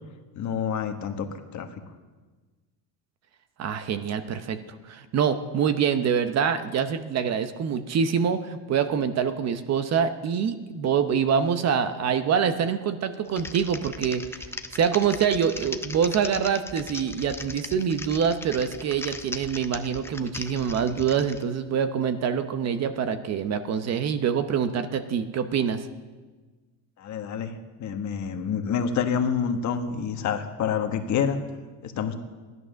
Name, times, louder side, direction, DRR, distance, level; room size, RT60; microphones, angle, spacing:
voice 1, 0.3-1.8 27.0-31.4 31.8-32.1, left 7 dB, 45° left, 6 dB, 1.3 m, -28 dB
voice 2, 3.6-4.6 4.8-14.2 14.7-25.9, right 7 dB, 40° right, 10 dB, 0.8 m, -25 dB
Typing, 13.3-21.4, left 3 dB, 5° left, 0.4 m, -38 dB
16.0 x 11.0 x 6.3 m, 1.3 s
cardioid pair, 145°, 41 cm